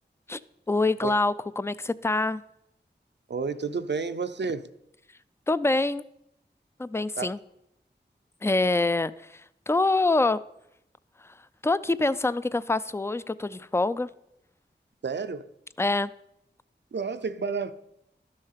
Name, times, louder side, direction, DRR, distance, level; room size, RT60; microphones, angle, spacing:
voice 1, 0.7-2.4 5.5-6.0 6.8-7.4 8.4-10.4 11.6-14.1 15.8-16.1, left 2 dB, 15° left, 0.4 m, -25 dB
voice 2, 3.3-4.7 7.2-7.3 15.0-15.5 16.9-17.7, right 5 dB, 70° right, 0.6 m, -30 dB
12.5 x 6.4 x 5.7 m
wide cardioid pair, 55°, 19 cm